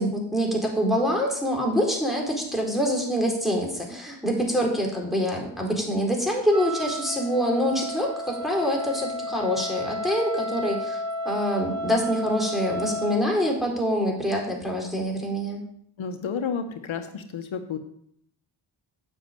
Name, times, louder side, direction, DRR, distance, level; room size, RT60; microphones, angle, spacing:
voice 1, 0.0-15.6, equal, ahead, -1 dB, 4.3 m, -25 dB
Wind instrument woodwind instrument, 6.5-13.3, equal, 30° left, 1.7 m, -32 dB
voice 2, 16.0-17.8, left 6 dB, 70° left, 7 dB, 1.2 m, -31 dB
9.8 x 6.6 x 8.9 m, 0.68 s
cardioid pair, 85°, 49 cm